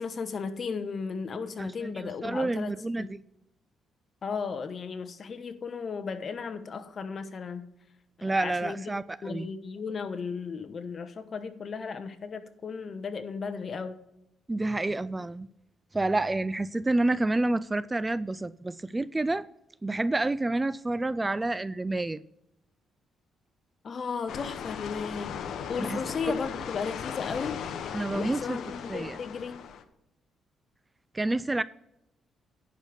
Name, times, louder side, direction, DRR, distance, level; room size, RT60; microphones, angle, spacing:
voice 1, 0.0-2.7 3.0-3.1 4.2-7.7 8.2-8.8 9.2-14.0 23.8-25.4 25.7-27.8 28.1-29.6, left 5 dB, 45° left, 1.0 m, -35 dB
voice 2, 1.6-3.2 8.2-9.5 14.5-15.5 15.9-19.5 19.8-22.2 25.8-26.0 27.9-28.6 28.9-29.2 31.1-31.6, right 2 dB, 15° right, 0.3 m, -29 dB
sound 1, 24.3-29.8, left 7 dB, 70° left, 0.9 m, -37 dB
10.5 x 5.1 x 6.6 m
cardioid pair, 90°, 0 cm